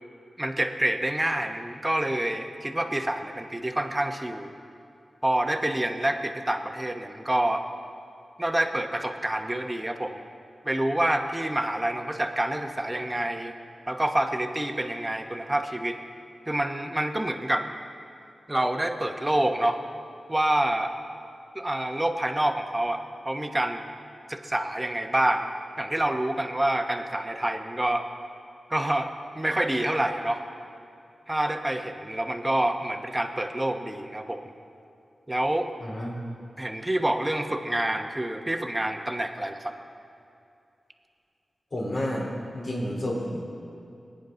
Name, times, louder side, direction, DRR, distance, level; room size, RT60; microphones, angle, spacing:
voice 1, 0.4-4.5 5.2-7.6 8.4-10.2 10.6-13.5 13.9-16.0 16.5-17.6 18.5-19.8 20.3-20.9 21.5-23.8 24.3-25.5 25.8-28.0 28.7-30.4 31.3-34.4 35.3-35.7 36.6-39.7, right 1 dB, 20° right, 5 dB, 1.1 m, -27 dB
voice 2, 35.8-36.1 41.7-42.3 42.5-43.4, left 1 dB, 60° left, -3 dB, 3.9 m, -30 dB
21.5 x 9.7 x 3.9 m, 2.6 s
cardioid pair, 55°, 0 cm